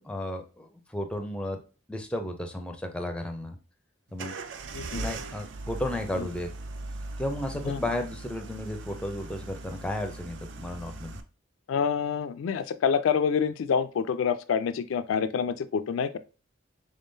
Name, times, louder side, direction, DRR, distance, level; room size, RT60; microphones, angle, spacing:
voice 1, 0.0-1.6 1.9-3.6 4.1-4.4 4.9-6.5 7.2-11.2, left 1 dB, 5° left, 0.4 m, -33 dB
sound 1, 4.2-11.2, right 2 dB, 60° right, 0.4 m, -39 dB
voice 2, 4.7-5.1 6.2-6.3 7.7-7.8 11.7-16.2, left 6 dB, 75° left, 0.3 m, -27 dB
3.6 x 3.6 x 2.6 m
head